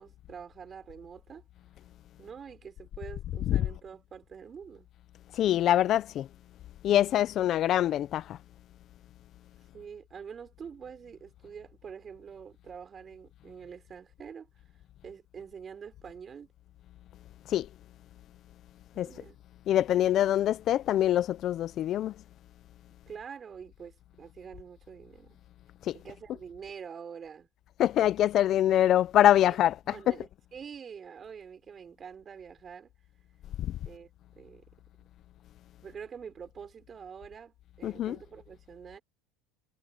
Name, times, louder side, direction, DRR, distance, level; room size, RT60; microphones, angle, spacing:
voice 1, 0.0-1.4 2.2-4.9 9.7-14.5 15.0-16.5 18.9-19.4 19.9-20.5 23.1-25.4 25.9-27.5 29.8-32.9 33.8-34.1 34.3-34.7 35.8-39.0, right 7 dB, 30° right, 5.9 m, -46 dB
voice 2, 5.3-6.3 6.8-8.4 17.5-17.7 19.0-19.1 19.7-22.1 25.9-26.0 27.8-30.2 33.6-33.7 37.8-38.2, left 12 dB, 45° left, 0.6 m, -24 dB
supercardioid pair, 115°, 0 cm